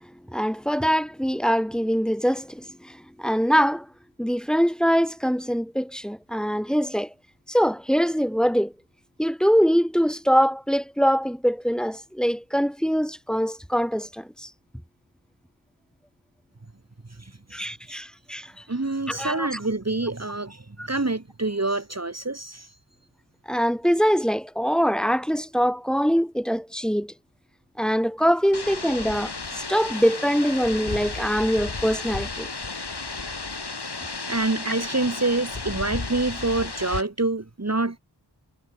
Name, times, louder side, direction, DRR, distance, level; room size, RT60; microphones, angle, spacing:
voice 1, 0.3-3.9 4.2-7.1 7.5-8.7 9.2-14.5 17.5-18.6 19.1-19.6 20.8-20.9 23.5-27.1 27.8-32.5 34.6-34.7, equal, ahead, 5.7 m, -23 dB
voice 2, 17.2-17.6 17.9-18.0 18.7-22.7 34.3-38.0, right 2 dB, 35° right, 2.4 m, -27 dB
sound 1, 28.5-37.0, left 3 dB, 65° left, 3.3 m, -33 dB
wide cardioid pair, 50°, 42 cm